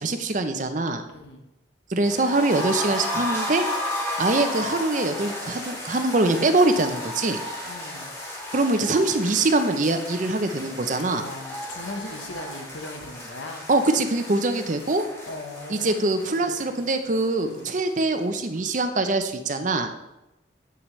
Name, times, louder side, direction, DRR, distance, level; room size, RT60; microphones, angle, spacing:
voice 1, 0.0-1.0 1.9-3.7 4.2-7.4 8.5-11.2 13.7-15.0 15.7-19.9, right 2 dB, 40° right, 8 dB, 0.6 m, -23 dB
voice 2, 1.1-1.5 7.6-8.1 11.1-13.6 15.2-16.7 17.4-17.7, left 2 dB, 85° left, 4 dB, 1.1 m, -39 dB
sound 1, 2.0-17.9 18.1-18.2 18.6-18.7, left 1 dB, 15° left, 1.8 m, -33 dB
8.0 x 6.0 x 3.2 m, 0.93 s
head